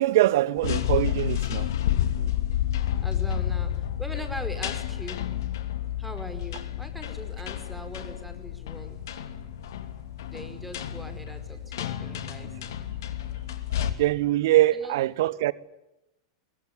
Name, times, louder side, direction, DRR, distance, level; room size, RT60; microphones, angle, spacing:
voice 1, 0.0-1.7 13.7-15.5, right 15 dB, 55° right, 1.2 m, -23 dB
sound 1, 0.6-13.9, left 11 dB, 60° left, 2.9 m, -30 dB
voice 2, 1.9-2.5 3.0-5.2 6.0-9.0 10.2-12.5 14.7-15.0, equal, 5° right, 5.0 m, -41 dB
24.0 x 22.0 x 9.8 m
figure-of-eight pair, 90°, 2 cm